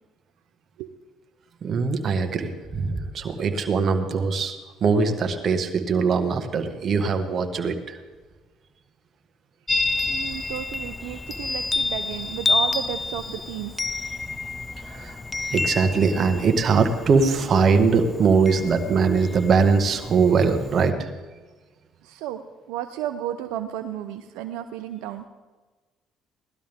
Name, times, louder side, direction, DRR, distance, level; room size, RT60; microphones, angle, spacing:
voice 1, 1.6-8.0 14.8-15.2 15.5-21.1, right 5 dB, 50° right, 6 dB, 1.8 m, -21 dB
Chime, 9.7-20.9, left 3 dB, 20° left, 0.5 m, -29 dB
voice 2, 10.1-13.8 22.0-22.4 22.7-25.3, right 12 dB, 80° right, 8 dB, 0.7 m, -33 dB
18.5 x 12.5 x 3.6 m, 1.3 s
supercardioid pair, 75°, 0 cm